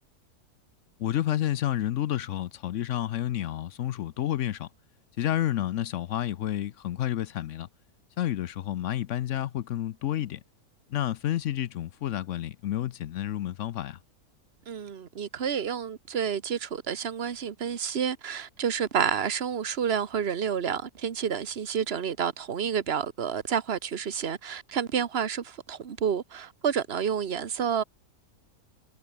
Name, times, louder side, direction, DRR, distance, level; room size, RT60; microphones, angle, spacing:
voice 1, 1.0-4.7 5.2-7.7 8.2-10.4 10.9-14.0, left 12 dB, 65° left, 0.8 m, -30 dB
voice 2, 14.7-27.8, right 7 dB, 45° right, 1.4 m, -29 dB
omnidirectional pair, 1.6 m